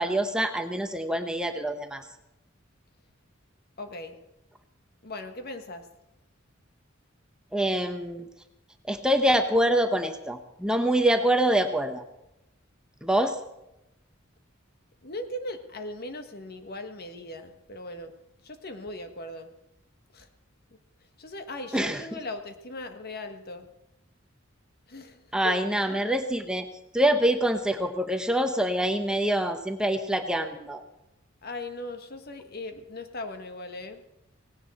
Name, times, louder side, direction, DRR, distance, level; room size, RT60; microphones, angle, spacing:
voice 1, 0.0-2.0 7.5-8.3 8.9-12.0 13.0-13.4 21.7-22.0 25.3-26.7 26.9-30.8, right 1 dB, 5° right, 6 dB, 1.0 m, -25 dB
voice 2, 3.8-4.2 5.0-5.9 15.0-18.1 18.4-19.5 20.1-20.3 21.2-23.7 24.9-25.6 31.4-34.0, left 2 dB, 50° left, 7 dB, 1.5 m, -39 dB
18.0 x 17.0 x 4.3 m, 0.89 s
head